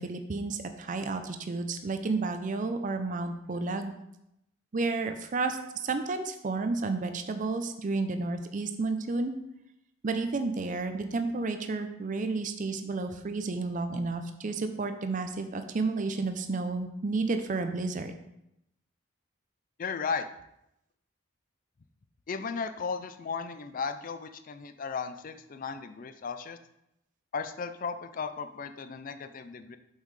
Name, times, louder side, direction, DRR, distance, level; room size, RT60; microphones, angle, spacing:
voice 1, 0.0-3.9 4.7-9.4 10.0-18.2, right 3 dB, 40° right, 8 dB, 0.5 m, -31 dB
voice 2, 19.8-20.3 22.3-26.6 27.3-29.8, left 5 dB, 40° left, 10 dB, 0.4 m, -35 dB
7.2 x 5.5 x 3.2 m, 0.82 s
head